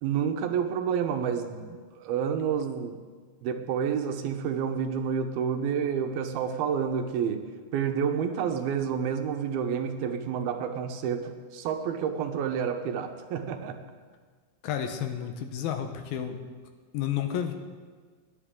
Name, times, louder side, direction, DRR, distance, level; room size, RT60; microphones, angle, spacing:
voice 1, 0.0-3.0 3.4-7.4 7.7-13.8, right 7 dB, 80° right, 6 dB, 2.8 m, -29 dB
voice 2, 14.6-16.4 16.9-17.5, left 9 dB, 75° left, 6 dB, 2.8 m, -31 dB
29.5 x 11.0 x 3.8 m, 1.6 s
omnidirectional pair, 4.4 m